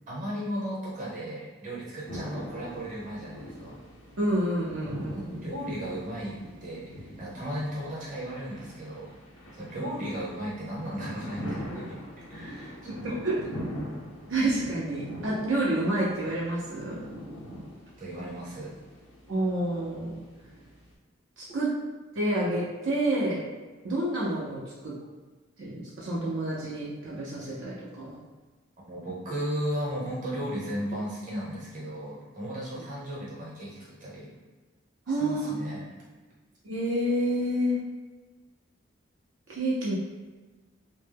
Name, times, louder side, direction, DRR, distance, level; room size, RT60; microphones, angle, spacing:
voice 1, 0.1-3.8 5.1-9.1 9.5-13.3 18.0-18.7 28.9-34.3 35.2-35.9, equal, 35° right, -6 dB, 0.8 m, -35 dB
sound 1, 2.1-20.9, equal, 75° left, 0.6 m, -42 dB
voice 2, 4.2-5.5 12.9-13.4 14.3-17.0 19.3-20.2 21.4-21.7 22.1-23.4 23.8-25.0 25.6-28.2 35.1-35.5 36.6-37.8 39.5-39.9, right 1 dB, 70° right, -7 dB, 0.5 m, -29 dB
2.1 x 2.1 x 3.3 m, 1.3 s
head